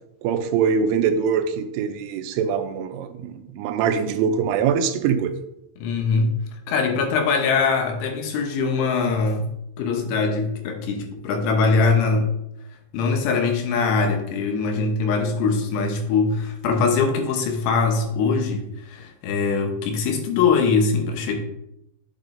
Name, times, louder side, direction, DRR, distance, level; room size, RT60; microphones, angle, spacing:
voice 1, 0.2-5.3, right 7 dB, 85° right, 7 dB, 3.3 m, -23 dB
voice 2, 5.8-6.4 6.7-9.5 9.8-12.3 12.9-21.4, left 4 dB, 75° left, 3 dB, 2.9 m, -22 dB
8.3 x 8.1 x 2.6 m, 0.82 s
omnidirectional pair, 5.6 m